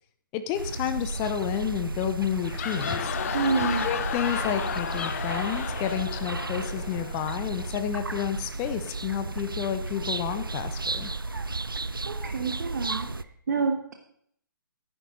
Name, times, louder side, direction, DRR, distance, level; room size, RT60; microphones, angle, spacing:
voice 1, 0.3-3.2 3.8-11.1, left 10 dB, 20° left, 9 dB, 0.9 m, -30 dB
sound 1, 0.5-13.2, right 3 dB, 85° right, 0.7 m, -33 dB
sound 2, 2.3-7.9, left 7 dB, 45° left, 1.1 m, -33 dB
voice 2, 3.3-3.9 12.0-13.1 13.5-13.9, right 4 dB, 55° right, 5 dB, 1.8 m, -27 dB
15.0 x 11.0 x 4.0 m, 0.66 s
figure-of-eight pair, 135°, 11 cm